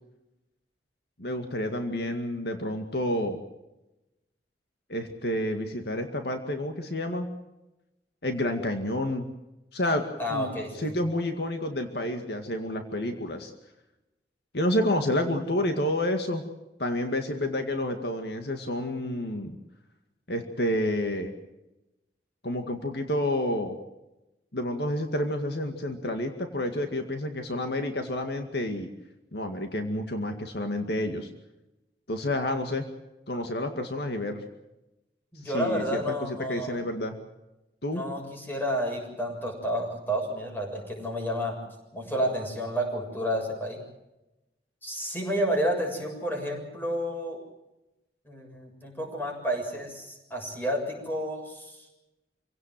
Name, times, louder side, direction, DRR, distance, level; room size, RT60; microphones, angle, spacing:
voice 1, 1.2-3.4 4.9-7.3 8.2-9.3 9.7-10.0 10.3-13.5 14.5-16.4 16.8-19.6 20.3-21.3 22.4-23.8 24.5-28.9 29.3-31.3 32.1-32.9 33.3-34.4 35.4-37.2 37.8-38.0, left 1 dB, 65° left, 5 dB, 2.1 m, -29 dB
voice 2, 10.2-10.9 35.3-36.8 37.9-41.6 41.9-43.8 44.8-47.4 48.3-51.9, equal, 10° left, 1 dB, 7.2 m, -30 dB
27.0 x 17.5 x 7.6 m, 0.96 s
head